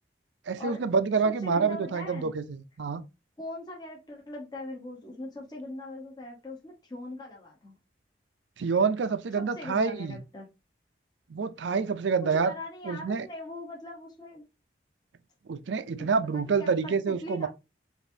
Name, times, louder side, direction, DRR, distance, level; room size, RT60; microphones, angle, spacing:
voice 1, 0.5-3.0 8.6-10.2 11.3-12.5 12.9-13.3 15.5-17.5, right 5 dB, 85° right, 0.4 m, -27 dB
voice 2, 1.2-2.3 3.4-7.7 9.4-10.5 12.2-14.5 16.2-17.5, left 1 dB, 25° left, 0.9 m, -41 dB
4.9 x 2.6 x 2.6 m
head